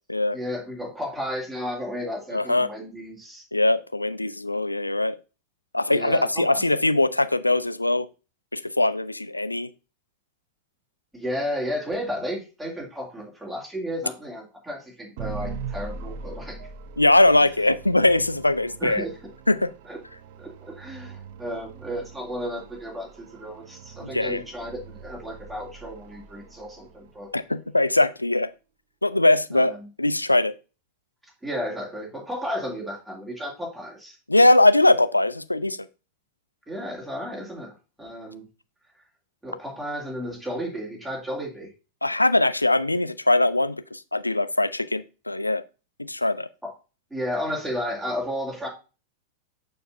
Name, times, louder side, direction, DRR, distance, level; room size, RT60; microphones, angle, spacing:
voice 1, 0.3-3.4 5.9-6.9 11.1-16.7 18.8-19.1 19.8-20.0 20.4-27.3 29.5-29.7 31.4-34.2 36.7-38.5 39.4-41.7 46.6-46.7 47.1-48.7, equal, 5° right, -3 dB, 2.5 m, -33 dB
voice 2, 2.3-2.7 3.5-5.2 5.7-8.1 8.5-9.7 17.0-19.0 19.5-19.7 24.0-24.4 27.3-28.5 29.0-29.7 30.0-30.5 34.3-35.9 42.0-45.6 46.0-46.5, left 2 dB, 85° left, 13 dB, 0.4 m, -21 dB
sound 1, 15.2-27.3, right 5 dB, 50° right, 0.7 m, -41 dB
6.7 x 6.4 x 2.6 m, 0.32 s
figure-of-eight pair, 90°, 0 cm